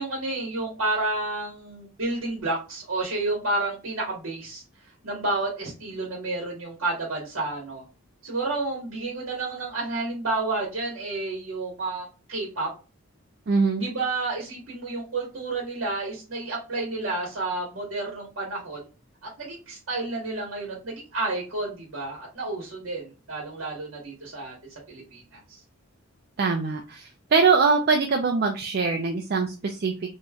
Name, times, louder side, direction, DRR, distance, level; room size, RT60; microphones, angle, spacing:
voice 1, 0.0-4.6 5.0-7.8 8.2-12.7 13.8-18.8 19.2-24.5 24.9-25.6, right 2 dB, 70° right, -3 dB, 1.1 m, -30 dB
voice 2, 13.5-13.9 26.4-29.9, right 4 dB, 50° right, 3 dB, 0.4 m, -23 dB
3.1 x 2.6 x 2.3 m, 0.31 s
head